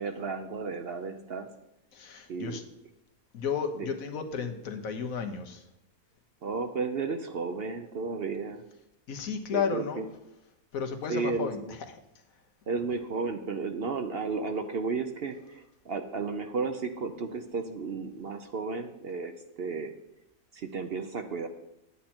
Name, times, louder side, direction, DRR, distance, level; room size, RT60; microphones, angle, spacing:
voice 1, 0.0-1.5 2.3-2.6 3.7-4.0 6.4-8.6 9.5-10.1 11.1-11.8 12.7-19.9 20.5-21.5, right 4 dB, 55° right, 7 dB, 0.7 m, -33 dB
voice 2, 1.9-2.6 3.3-5.6 9.1-10.1 10.7-11.6, left 6 dB, 65° left, 6 dB, 1.4 m, -33 dB
9.8 x 8.5 x 4.4 m, 0.85 s
omnidirectional pair, 1.6 m